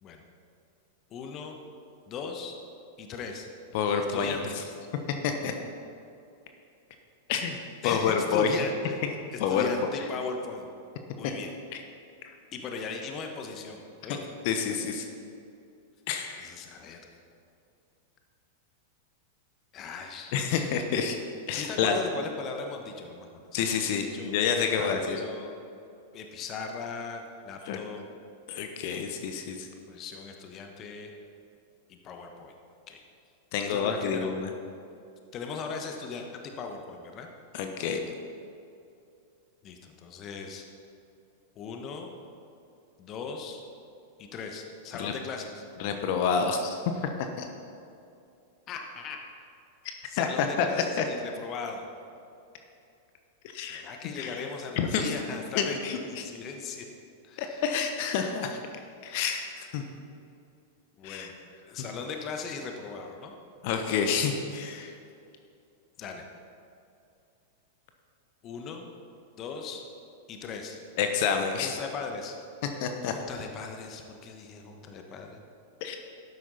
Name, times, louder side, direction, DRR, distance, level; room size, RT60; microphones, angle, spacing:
voice 1, 1.1-1.6 2.1-2.6 3.0-3.5 4.1-4.5 7.8-9.0 9.3-10.7 11.2-11.5 12.5-14.2 16.4-17.0 19.7-20.8 21.5-23.8 24.1-24.3 24.8-25.5 26.1-28.0 29.9-31.1 31.9-32.5 32.9-33.0 33.6-34.3 35.3-37.3 39.6-40.6 41.5-42.1 43.0-43.6 44.2-45.6 48.7-49.5 50.1-51.9 53.5-56.9 57.2-57.6 61.0-61.3 61.7-63.3 66.0-66.3 68.4-68.9 69.4-69.8 70.3-70.8 71.6-72.4 73.1-75.4, left 5 dB, 35° left, 3 dB, 1.2 m, -38 dB
voice 2, 3.7-4.6 5.2-5.5 7.3-7.6 7.8-8.6 9.4-9.9 11.2-11.3 11.7-11.8 12.2-12.3 14.1-14.2 14.4-15.1 16.1-16.5 20.3-21.2 21.5-22.0 23.5-25.2 27.6-27.8 28.5-29.7 33.5-34.5 37.5-38.0 44.9-45.1 45.8-47.5 49.8-50.7 51.0-51.1 53.4-53.8 54.2-54.5 54.8-55.1 55.5-56.2 57.4-58.6 59.0-59.8 61.0-61.3 63.6-64.9 71.0-71.8 72.8-73.1 75.8-76.0, left 6 dB, 55° left, 5 dB, 1.0 m, -28 dB
12.5 x 9.6 x 4.1 m, 2.6 s
figure-of-eight pair, 95°, 0 cm